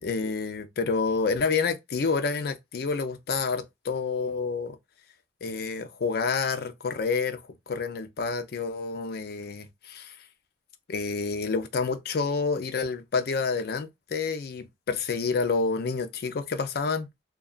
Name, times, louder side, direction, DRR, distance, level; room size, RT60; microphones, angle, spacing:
voice 1, 0.0-4.8 5.4-7.4 7.7-10.2 10.9-17.1, left 4 dB, 55° left, 0.4 m, -28 dB
2.8 x 2.2 x 2.3 m
head